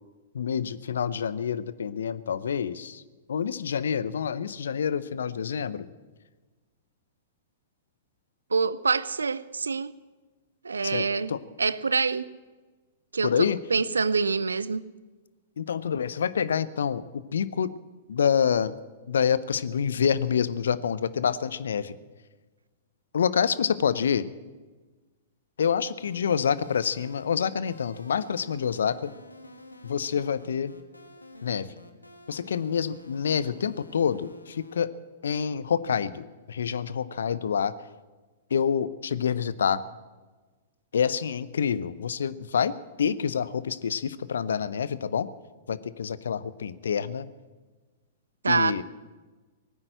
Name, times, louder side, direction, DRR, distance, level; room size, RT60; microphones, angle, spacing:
voice 1, 0.3-3.0 3.3-5.9 10.8-11.4 13.2-13.6 15.6-17.7 18.1-18.7 19.1-21.9 23.1-24.2 25.6-29.1 29.8-30.7 31.4-31.7 32.3-34.9 35.2-37.7 38.5-39.8 40.9-45.3 45.7-47.3 48.5-48.8, left 7 dB, 70° left, 0.7 m, -27 dB
voice 2, 8.5-9.9 10.6-11.3 11.6-12.2 13.1-13.3 13.7-14.8 48.4-48.8, right 4 dB, 80° right, 0.5 m, -25 dB
sound 1, 26.0-34.8, left 1 dB, 90° left, 1.4 m, -49 dB
18.5 x 9.7 x 8.0 m
figure-of-eight pair, 105°, 0 cm